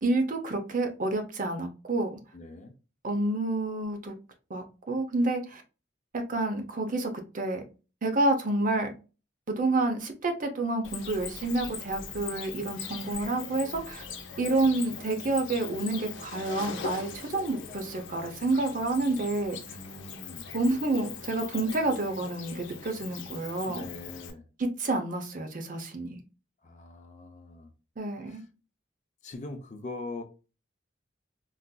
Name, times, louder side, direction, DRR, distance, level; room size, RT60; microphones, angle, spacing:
voice 1, 0.0-2.2 3.0-4.1 4.5-5.6 6.1-7.6 8.0-8.9 9.5-14.0 14.4-19.6 20.5-23.8 24.6-26.2 28.0-28.4, right 2 dB, 45° right, 0.6 m, -29 dB
voice 2, 2.3-2.7 19.7-20.5 23.7-24.4 26.6-27.7 28.2-28.5 29.2-30.2, left 2 dB, 40° left, 0.5 m, -42 dB
Cricket, 10.8-24.3, left 6 dB, 80° left, 0.7 m, -41 dB
3.9 x 2.5 x 2.2 m
head